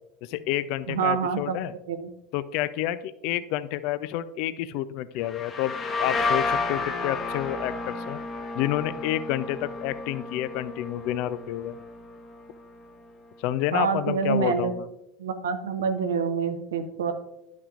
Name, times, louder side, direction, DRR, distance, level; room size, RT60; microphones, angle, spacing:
voice 1, 0.2-1.7 2.3-8.2 8.6-11.8 13.4-14.9, left 13 dB, 60° left, 15 dB, 0.3 m, -29 dB
voice 2, 0.9-1.6 1.9-2.1 13.7-14.7 15.2-17.1, right 6 dB, 80° right, 7 dB, 0.8 m, -26 dB
sound 1, 5.2-12.8, left 3 dB, 30° left, 1.0 m, -32 dB
11.0 x 5.9 x 2.5 m, 0.87 s
hypercardioid pair, 90°, 0 cm